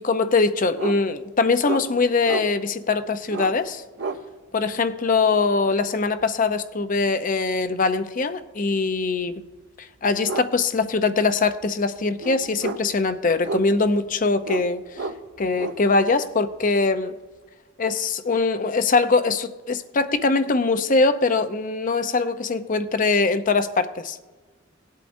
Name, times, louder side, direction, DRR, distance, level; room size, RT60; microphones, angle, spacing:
voice 1, 0.0-3.8 4.5-9.4 9.8-15.1 15.4-17.1 17.8-24.2, left 4 dB, 40° left, 11 dB, 0.6 m, -22 dB
sound 1, 0.8-1.0 1.6-1.9 2.2-2.5 3.2-3.5 4.0-4.2 6.2-6.4 9.3-9.4 10.2-10.5 10.8-10.9 11.3-11.6 12.2-13.0 13.4-13.9 14.4-14.7 14.9-15.8, right 3 dB, 60° right, 0.7 m, -30 dB
19.0 x 8.3 x 2.6 m, 1.3 s
head